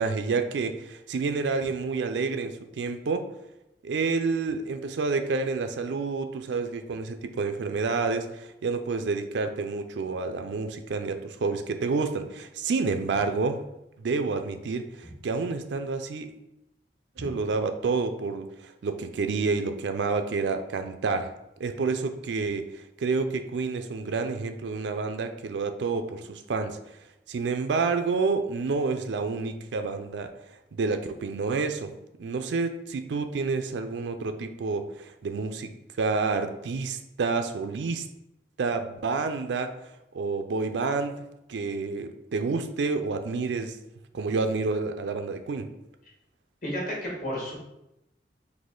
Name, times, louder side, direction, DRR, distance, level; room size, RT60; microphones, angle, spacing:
voice 1, 0.0-3.2 3.8-13.6 14.0-16.3 17.2-21.3 21.6-22.7 23.0-27.0 27.3-30.3 30.7-31.9 32.2-35.7 36.0-38.1 38.6-41.2 41.5-43.8 44.1-45.7, right 4 dB, 85° right, 8 dB, 0.4 m, -29 dB
voice 2, 46.6-47.6, equal, 45° left, -3 dB, 1.3 m, -32 dB
4.1 x 2.8 x 3.7 m, 0.87 s
head